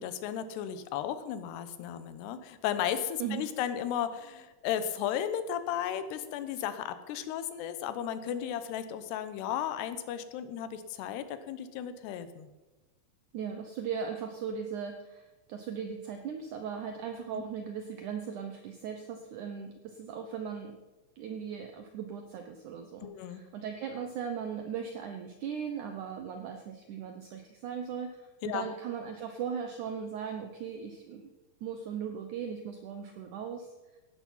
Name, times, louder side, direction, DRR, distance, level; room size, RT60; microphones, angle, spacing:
voice 1, 0.0-12.5 17.3-17.4 23.0-23.4 28.4-28.7, left 9 dB, 85° left, 11 dB, 3.1 m, -34 dB
voice 2, 13.3-20.8 21.2-31.2 31.6-33.7, right 7 dB, 80° right, 6 dB, 1.8 m, -38 dB
15.5 x 11.5 x 5.6 m, 1.1 s
omnidirectional pair, 4.7 m